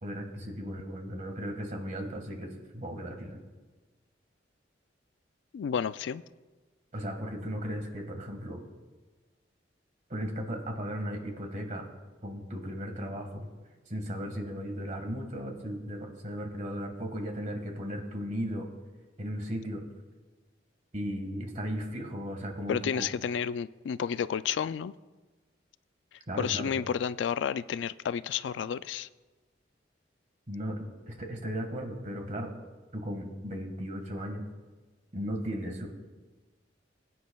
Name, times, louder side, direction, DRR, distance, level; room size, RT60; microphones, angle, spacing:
voice 1, 0.0-3.4 6.9-8.6 10.1-11.9 12.2-13.5 13.9-18.7 19.2-19.8 20.9-23.1 26.3-26.7 30.5-32.5 32.9-34.4 35.1-35.9, equal, 40° right, 1.7 m, -36 dB
voice 2, 5.5-6.2 22.7-24.9 26.4-29.1, left 7 dB, 75° left, 0.3 m, -31 dB
22.0 x 9.4 x 2.3 m
head